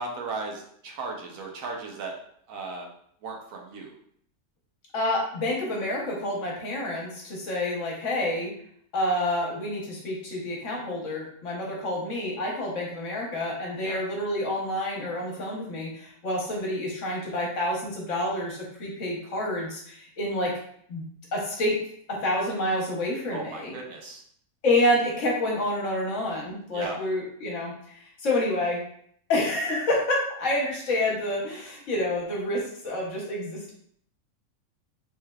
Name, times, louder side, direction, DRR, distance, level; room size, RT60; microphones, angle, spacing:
voice 1, 0.0-2.1 2.5-2.9 3.2-3.9 13.8-14.0 23.3-24.2 26.7-27.0, right 3 dB, 80° right, 1 dB, 1.1 m, -36 dB
voice 2, 4.9-8.5 8.9-20.5 20.9-21.0 21.3-21.8 22.1-23.7 24.6-27.7 28.2-28.8 29.3-33.7, left 1 dB, 65° left, -2 dB, 1.2 m, -28 dB
3.2 x 3.2 x 2.3 m, 0.65 s
omnidirectional pair, 1.4 m